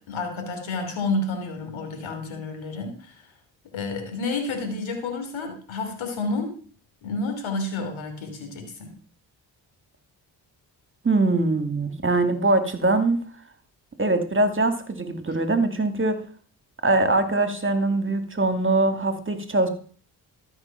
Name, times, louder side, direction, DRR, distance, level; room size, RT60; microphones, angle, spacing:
voice 1, 0.0-3.3 3.7-6.6 7.0-8.9, left 3 dB, 85° left, 5 dB, 3.1 m, -30 dB
voice 2, 11.0-13.2 14.0-16.2 16.8-19.7, right 2 dB, 25° right, 7 dB, 2.4 m, -22 dB
13.0 x 6.2 x 5.9 m, 0.43 s
supercardioid pair, 50°, 46 cm